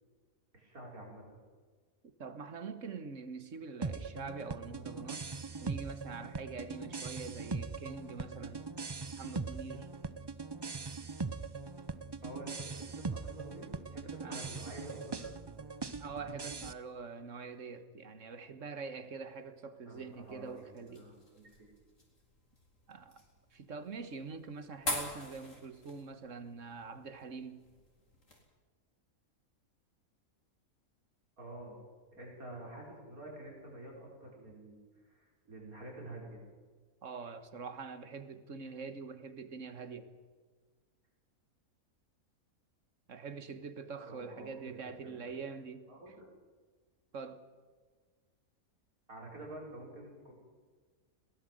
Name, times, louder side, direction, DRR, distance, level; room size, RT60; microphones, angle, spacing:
voice 1, 0.5-1.4 12.2-15.4 19.9-21.7 31.4-31.8 32.1-34.8 35.0-36.4 44.1-45.2 45.9-46.3 49.1-50.3, right 1 dB, 80° right, 6.2 m, -49 dB
voice 2, 2.2-5.3 5.6-8.7 9.2-9.9 14.2-14.5 16.0-21.1 22.9-23.2 23.5-27.6 37.0-40.1 43.1-46.1 47.1-47.4, right 5 dB, 60° right, 1.8 m, -44 dB
sound 1, 3.8-16.7, right 4 dB, 30° right, 0.4 m, -41 dB
sound 2, 19.9-28.4, left 2 dB, 60° left, 4.6 m, -45 dB
21.5 x 18.0 x 7.8 m
omnidirectional pair, 1.5 m